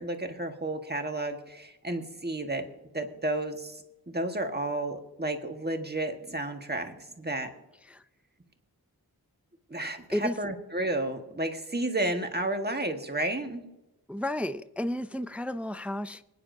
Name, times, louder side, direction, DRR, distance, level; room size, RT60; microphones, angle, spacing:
voice 1, 0.0-2.6 2.9-7.5 9.7-13.6, right 1 dB, 25° right, 1.5 m, -32 dB
voice 2, 14.1-16.2, left 1 dB, 5° right, 0.4 m, -32 dB
25.0 x 9.7 x 2.7 m
wide cardioid pair, 65°, 38 cm